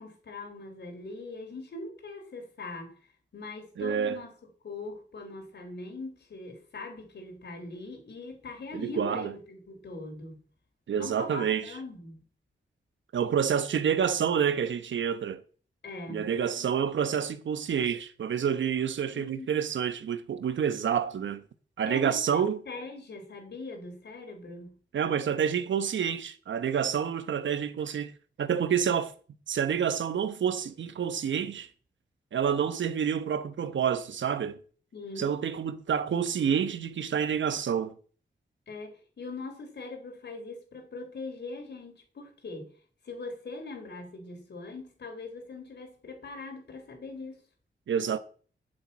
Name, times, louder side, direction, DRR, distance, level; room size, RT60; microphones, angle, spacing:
voice 1, 0.0-2.9 3.3-4.3 4.6-10.4 10.9-12.2 15.8-16.3 19.1-19.5 21.9-24.8 34.9-35.3 38.7-42.7 43.0-47.4, left 3 dB, 65° left, 4.2 m, -41 dB
voice 2, 3.8-4.2 8.7-9.3 10.9-11.7 13.1-15.4 16.1-21.4 21.8-22.6 24.9-28.1 28.4-29.1 29.5-31.7 32.3-34.6 35.2-37.9 47.9-48.2, right 8 dB, 85° right, 1.0 m, -28 dB
9.0 x 7.5 x 8.7 m
wide cardioid pair, 115°, 19 cm